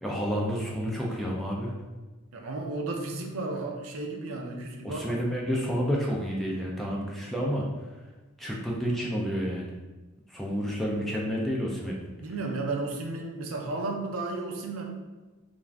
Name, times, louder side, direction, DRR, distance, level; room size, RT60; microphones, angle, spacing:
voice 1, 0.0-1.7 4.8-7.7 8.4-9.7 10.3-12.0, equal, ahead, -3 dB, 0.3 m, -30 dB
voice 2, 2.3-5.2 12.2-14.9, right 2 dB, 70° right, 2 dB, 0.4 m, -33 dB
2.4 x 2.3 x 3.2 m, 1.2 s
head